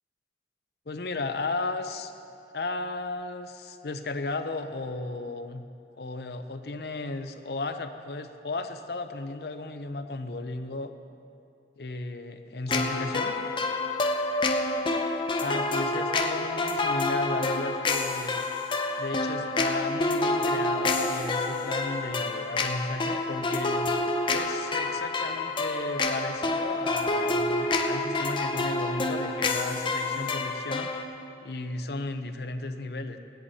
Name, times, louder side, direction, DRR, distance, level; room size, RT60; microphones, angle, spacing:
voice 1, 0.9-2.1 2.5-5.7 6.0-10.9 11.8-13.4 15.1-18.4 19.0-23.9 24.3-30.9 31.4-33.2, left 2 dB, 65° left, 8 dB, 0.7 m, -34 dB
sound 1, 12.7-31.0, left 2 dB, 30° left, 0.6 m, -28 dB
16.0 x 10.5 x 4.2 m, 2.6 s
head